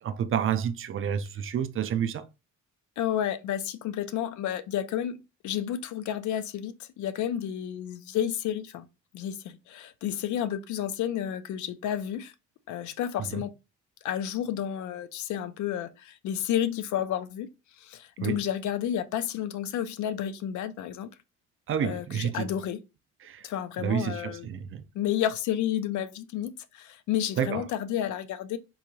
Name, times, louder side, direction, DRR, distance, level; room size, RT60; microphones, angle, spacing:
voice 1, 0.0-2.3 13.3-13.4 18.2-18.4 21.7-22.5 23.2-23.5 23.8-24.8 27.4-27.6, right 8 dB, 45° right, 0.4 m, -29 dB
voice 2, 3.0-8.9 9.1-12.3 12.7-13.5 14.0-17.5 17.8-21.1 21.8-22.8 23.4-24.5 24.9-28.6, left 10 dB, 75° left, 0.5 m, -31 dB
3.8 x 3.0 x 2.2 m
cardioid pair, 90°, 30 cm